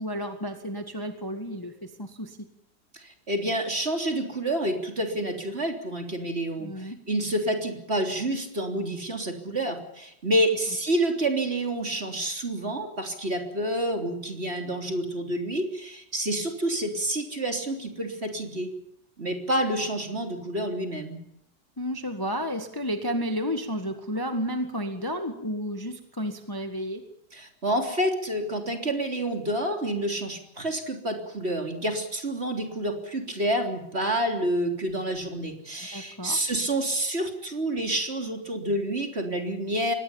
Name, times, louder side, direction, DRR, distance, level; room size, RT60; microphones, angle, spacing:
voice 1, 0.0-2.5 6.6-7.0 21.8-27.0 35.9-36.4, equal, 10° left, 7 dB, 1.7 m, -32 dB
voice 2, 2.9-18.7 19.2-21.2 27.3-39.9, right 1 dB, 35° right, 4 dB, 3.7 m, -28 dB
24.5 x 19.5 x 7.2 m, 0.76 s
omnidirectional pair, 2.0 m